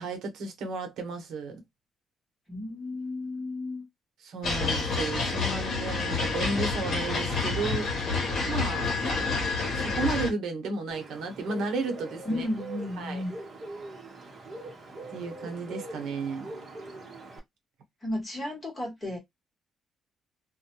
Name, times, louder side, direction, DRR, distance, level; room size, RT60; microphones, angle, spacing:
voice 1, 0.0-1.6 4.2-7.9 8.5-8.9 9.7-12.5 13.0-13.2 15.1-16.5, right 3 dB, 70° right, 0.8 m, -33 dB
voice 2, 2.5-3.8 12.2-13.3 18.0-19.2, left 1 dB, 20° left, 1.1 m, -33 dB
sound 1, 4.4-10.3, left 4 dB, 55° left, 0.9 m, -28 dB
Bird, 10.9-17.4, right 2 dB, 30° right, 0.8 m, -42 dB
2.2 x 2.1 x 2.9 m
cardioid pair, 155°, 0 cm